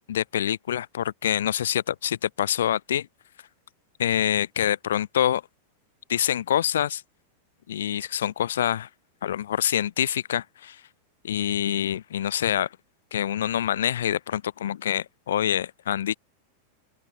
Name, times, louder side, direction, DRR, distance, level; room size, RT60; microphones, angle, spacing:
voice 1, 0.1-3.1 4.0-5.4 6.1-7.0 7.7-8.9 9.2-10.8 11.2-12.7 13.1-16.2, left 10 dB, 60° left, 1.8 m, -26 dB
open air
figure-of-eight pair, 90°, 0 cm